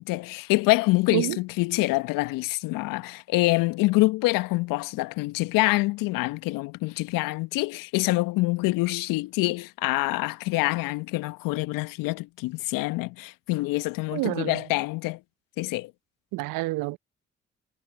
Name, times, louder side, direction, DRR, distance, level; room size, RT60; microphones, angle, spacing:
voice 1, 0.0-15.2 15.6-15.9, left 22 dB, 70° left, 1.5 m, -26 dB
voice 2, 14.1-14.6 16.3-17.0, right 20 dB, 70° right, 1.0 m, -28 dB
hypercardioid pair, 40°, 34 cm